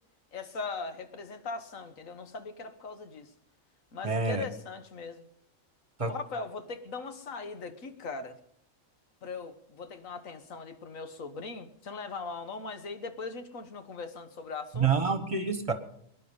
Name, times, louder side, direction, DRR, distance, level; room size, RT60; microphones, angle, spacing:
voice 1, 0.3-3.3 3.9-5.2 6.1-8.4 9.2-14.9, left 4 dB, 85° left, 1.7 m, -40 dB
voice 2, 4.0-4.4 6.0-6.1 14.8-15.7, right 5 dB, 25° right, 1.3 m, -27 dB
22.0 x 10.5 x 5.5 m
omnidirectional pair, 1.4 m